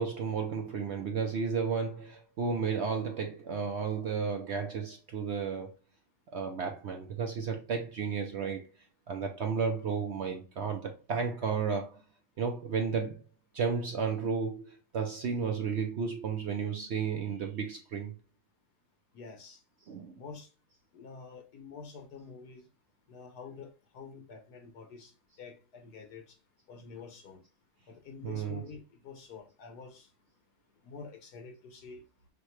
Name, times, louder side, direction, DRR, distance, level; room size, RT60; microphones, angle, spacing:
voice 1, 0.0-5.7 6.3-8.7 9.1-12.0 12.4-13.2 13.5-18.1 19.9-20.1 28.2-28.6, right 5 dB, 60° right, 0.7 m, -33 dB
voice 2, 19.1-19.6 20.1-20.5 20.9-22.7 23.1-26.4 26.7-27.4 27.9-30.1 30.8-32.0, left 5 dB, 80° left, 1.7 m, -48 dB
6.2 x 2.3 x 3.1 m
omnidirectional pair, 1.7 m